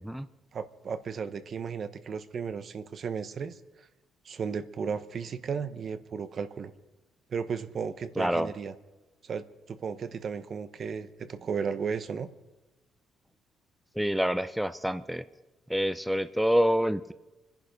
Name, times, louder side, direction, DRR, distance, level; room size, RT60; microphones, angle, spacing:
voice 1, 0.5-3.9 4.2-6.7 7.3-8.7 9.2-12.3, right 6 dB, 50° right, 12 dB, 0.9 m, -34 dB
voice 2, 8.2-8.5 13.9-15.3 15.7-17.1, equal, 5° right, 12 dB, 0.6 m, -27 dB
24.5 x 11.0 x 5.2 m, 1.1 s
cardioid pair, 90°, 0 cm